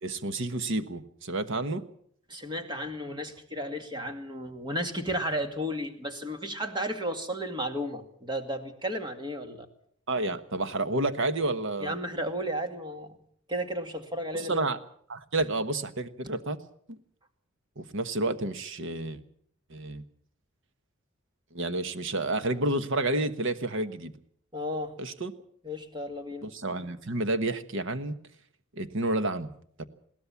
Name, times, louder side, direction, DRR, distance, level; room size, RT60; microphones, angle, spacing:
voice 1, 0.0-1.8 10.1-12.0 14.3-14.8 15.1-16.6 16.9-17.0 17.8-19.2 19.7-20.0 21.5-24.1 25.0-25.3 26.4-28.2 28.7-29.5 29.8-29.9, right 2 dB, 65° right, 11 dB, 1.3 m, -30 dB
voice 2, 2.3-9.7 11.8-13.2 13.5-14.6 24.5-24.9 25.6-26.5, equal, 20° right, 6 dB, 2.2 m, -33 dB
21.5 x 17.0 x 7.1 m, 0.63 s
head